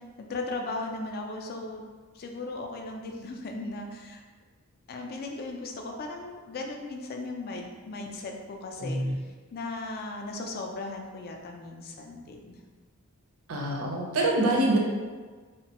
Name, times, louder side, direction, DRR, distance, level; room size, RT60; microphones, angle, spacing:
voice 1, 0.2-1.9 2.1-4.2 4.9-9.0 9.5-12.6, left 2 dB, 45° left, 2 dB, 0.3 m, -37 dB
voice 2, 8.8-9.1 13.5-14.8, right 1 dB, 65° right, -1 dB, 0.5 m, -25 dB
3.0 x 2.1 x 2.8 m, 1.5 s
head